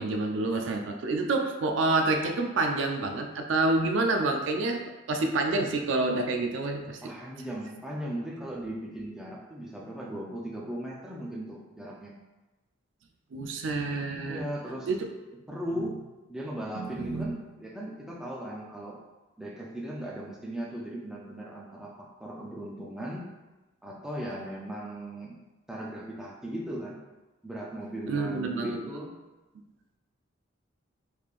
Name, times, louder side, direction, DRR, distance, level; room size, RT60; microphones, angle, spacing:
voice 1, 0.0-4.8 5.1-7.1 13.3-14.4 14.9-15.0 16.7-17.3 28.1-28.8, right 2 dB, 65° right, 4 dB, 0.4 m, -28 dB
voice 2, 7.0-12.1 14.3-14.9 15.5-16.0 16.3-19.0 19.4-23.3 23.8-25.4 25.7-27.0 27.4-29.1, right 1 dB, 5° right, -4 dB, 0.4 m, -37 dB
3.6 x 3.2 x 2.4 m, 1.1 s
head